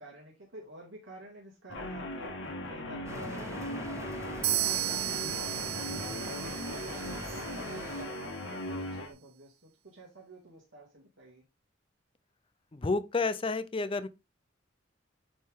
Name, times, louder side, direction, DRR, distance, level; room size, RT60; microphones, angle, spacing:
voice 1, 0.0-4.7 5.1-5.4 5.7-11.4, right 1 dB, 80° right, 1.9 m, -51 dB
Guitar, 1.7-9.1, left 1 dB, 80° left, 1.4 m, -38 dB
sound 1, 3.1-8.1, right 1 dB, 15° right, 1.0 m, -44 dB
sound 2, 4.4-8.2, right 13 dB, 55° right, 0.4 m, -34 dB
voice 2, 12.7-14.1, left 3 dB, 30° left, 0.5 m, -30 dB
8.6 x 3.3 x 3.6 m
head